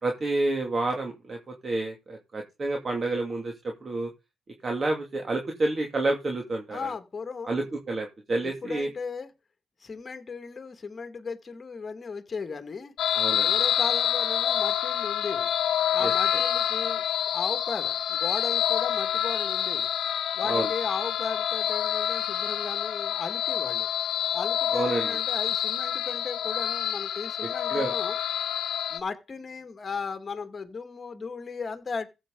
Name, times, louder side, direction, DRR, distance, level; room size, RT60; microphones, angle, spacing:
voice 1, 0.0-4.1 4.6-6.9 7.4-8.9 13.1-13.5 16.0-16.1 20.4-20.7 24.7-25.1 27.7-27.9, right 2 dB, 35° right, 2.4 m, -29 dB
voice 2, 6.7-7.7 8.3-9.3 9.8-12.9 13.5-15.5 15.9-17.0 17.3-19.9 20.3-23.9 24.3-28.2 28.9-32.1, left 5 dB, 35° left, 2.0 m, -36 dB
sound 1, 13.0-29.0, left 10 dB, 75° left, 1.1 m, -27 dB
15.0 x 7.8 x 3.9 m
cardioid pair, 90°, 0 cm